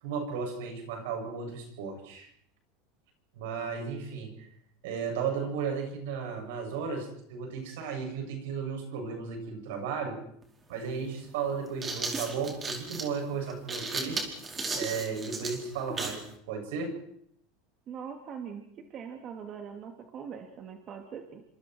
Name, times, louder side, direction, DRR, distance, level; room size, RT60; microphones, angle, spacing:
voice 1, 0.0-2.3 3.3-4.5 4.8-10.2 10.7-14.3 14.7-17.0, right 5 dB, 80° right, 3 dB, 7.7 m, -35 dB
sound 1, 10.4-10.5 11.5-16.3, right 3 dB, 20° right, 4.8 m, -35 dB
voice 2, 17.9-21.4, right 7 dB, 40° right, 4 dB, 2.9 m, -42 dB
28.5 x 26.0 x 4.8 m, 0.68 s
supercardioid pair, 125°, 0 cm